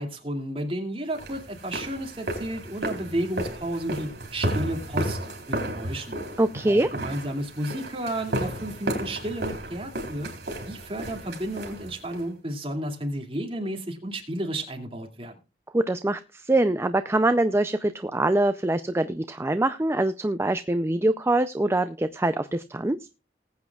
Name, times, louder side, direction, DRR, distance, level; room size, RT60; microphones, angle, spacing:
voice 1, 0.0-6.2 6.7-10.3 10.6-15.4, right 1 dB, 30° right, 3 dB, 2.4 m, -32 dB
sound 1, 1.1-12.3, right 1 dB, 60° right, 4.1 m, -33 dB
voice 2, 6.4-6.9 15.7-23.0, right 2 dB, 15° right, 11 dB, 0.4 m, -24 dB
20.0 x 8.4 x 2.3 m, 0.30 s
head